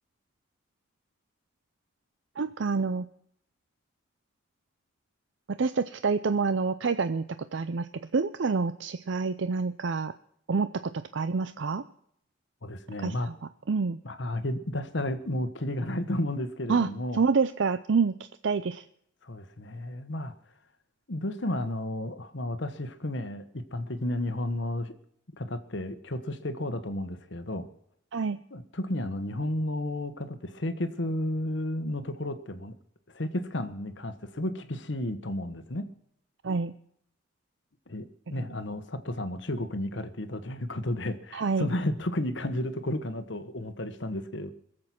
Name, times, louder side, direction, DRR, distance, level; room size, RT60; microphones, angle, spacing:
voice 1, 2.4-3.1 5.5-7.2 7.5-10.1 10.5-11.8 13.0-13.3 13.7-14.0 16.7-18.8 28.1-28.4 36.4-36.7 41.3-41.7, right 4 dB, 65° right, 12 dB, 0.5 m, -27 dB
voice 2, 12.6-13.3 14.0-17.2 19.2-20.3 21.1-24.9 25.4-27.7 28.5-32.7 33.1-35.9 37.9-44.5, left 1 dB, 65° left, 10 dB, 1.2 m, -32 dB
22.5 x 7.7 x 5.9 m, 0.69 s
head